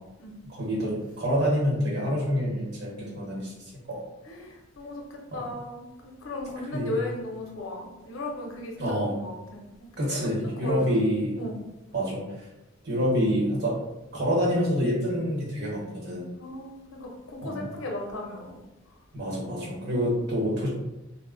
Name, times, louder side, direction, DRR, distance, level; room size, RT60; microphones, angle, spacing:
voice 1, 0.4-3.5 3.9-4.0 5.3-5.5 6.7-7.0 8.8-9.2 10.0-11.4 11.9-12.5 12.8-13.8 14.1-16.3 17.4-17.7 19.1-20.7, equal, 50° right, -4 dB, 1.0 m, -27 dB
voice 2, 4.3-10.2 10.6-11.0 11.4-11.6 16.4-18.6 19.8-20.0, left 1 dB, 75° left, 0 dB, 0.6 m, -36 dB
2.1 x 2.1 x 3.6 m, 0.99 s
head